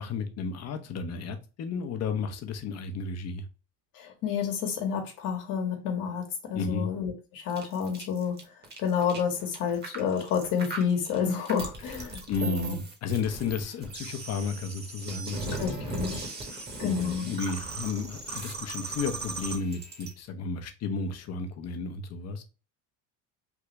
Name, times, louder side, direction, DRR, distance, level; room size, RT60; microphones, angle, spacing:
voice 1, 0.0-3.4 6.5-6.9 12.3-15.6 15.9-16.0 16.5-22.4, left 4 dB, 45° left, 0.8 m, -33 dB
voice 2, 3.9-8.4 8.8-12.8 15.5-16.2 16.8-17.3, left 7 dB, 65° left, 1.2 m, -30 dB
sound 1, 7.5-20.1, right 3 dB, 30° right, 1.2 m, -38 dB
3.5 x 2.4 x 3.0 m
cardioid pair, 110°, 36 cm